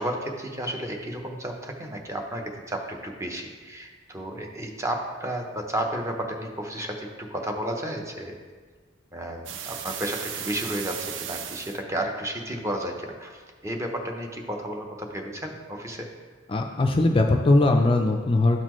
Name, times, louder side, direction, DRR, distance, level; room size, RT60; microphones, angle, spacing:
voice 1, 0.0-8.4 9.1-16.1, right 1 dB, 15° right, 2 dB, 0.8 m, -32 dB
sound 1, 9.5-11.8, right 9 dB, 65° right, 0.4 m, -35 dB
voice 2, 16.5-18.6, left 2 dB, 25° left, 3 dB, 0.4 m, -20 dB
12.5 x 4.2 x 3.0 m, 1.5 s
head